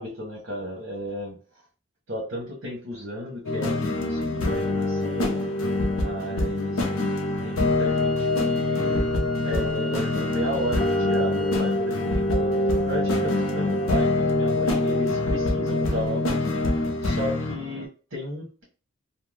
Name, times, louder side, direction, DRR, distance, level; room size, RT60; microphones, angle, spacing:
voice 1, 0.0-1.4 2.1-5.5 6.0-6.8 7.4-9.1 9.4-18.6, equal, 65° right, -3 dB, 0.9 m, -34 dB
sound 1, 3.4-17.8, left 2 dB, 85° left, 0.6 m, -24 dB
Wind instrument woodwind instrument, 7.8-11.8, right 1 dB, 20° left, 0.8 m, -41 dB
2.6 x 2.1 x 3.2 m, 0.36 s
head